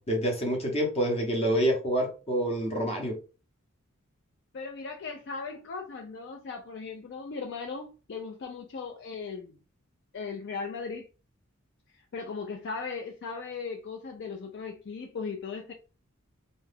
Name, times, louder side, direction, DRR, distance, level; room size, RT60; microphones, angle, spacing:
voice 1, 0.0-3.2, equal, 30° left, 0.9 m, -27 dB
voice 2, 4.5-9.5 10.1-11.1 12.1-15.7, left 5 dB, 55° left, 0.4 m, -37 dB
2.7 x 2.3 x 3.4 m
head